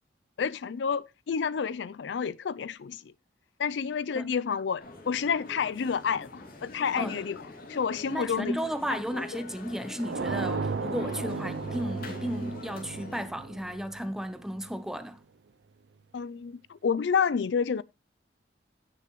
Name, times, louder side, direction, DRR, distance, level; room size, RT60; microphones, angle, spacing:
voice 1, 0.4-3.1 3.6-7.4 7.7-8.6 8.9-9.4 16.1-17.8, left 6 dB, 75° left, 0.4 m, -30 dB
sound 1, 4.8-13.2, left 2 dB, 55° left, 2.9 m, -45 dB
voice 2, 8.1-15.2, equal, 5° right, 0.8 m, -34 dB
sound 2, 10.0-14.7, right 4 dB, 70° right, 0.6 m, -35 dB
16.0 x 6.7 x 3.0 m
head